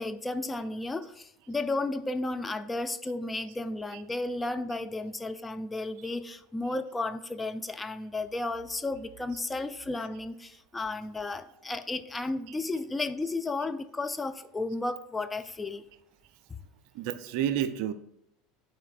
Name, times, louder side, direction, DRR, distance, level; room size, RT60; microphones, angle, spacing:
voice 1, 0.0-15.8, left 2 dB, 15° left, 9 dB, 0.4 m, -33 dB
voice 2, 16.9-17.9, right 10 dB, 55° right, 13 dB, 0.4 m, -30 dB
12.0 x 4.3 x 2.4 m, 0.80 s
figure-of-eight pair, 75°, 0 cm